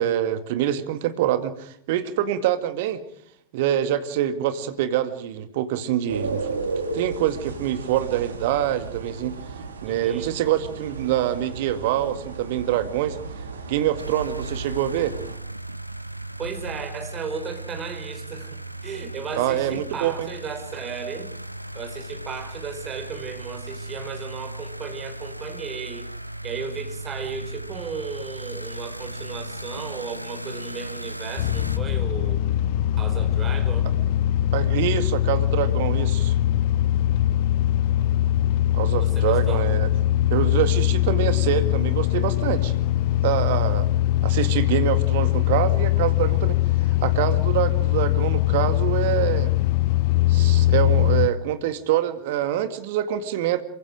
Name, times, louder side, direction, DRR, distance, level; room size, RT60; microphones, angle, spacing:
voice 1, 0.0-3.0 3.5-6.5 6.9-9.3 9.8-13.2 13.7-15.2 19.4-20.3 34.5-36.3 38.7-39.9 40.3-42.7 43.2-43.9 44.2-46.6 47.0-49.5 50.3-53.6, right 11 dB, 50° right, 10 dB, 2.1 m, -25 dB
sound 1, 6.1-15.4, right 4 dB, 70° right, 2.8 m, -34 dB
voice 2, 9.9-10.4 16.4-21.3 21.7-26.1 26.4-32.4 33.0-33.9 39.0-39.7, right 5 dB, 25° right, 7 dB, 4.5 m, -35 dB
aaz sound mix, 14.0-31.8, right 1 dB, 90° right, 0.9 m, -36 dB
sound 2, 31.4-51.3, left 14 dB, 45° left, 0.8 m, -21 dB
27.0 x 24.0 x 5.0 m, 0.66 s
figure-of-eight pair, 90°, 0 cm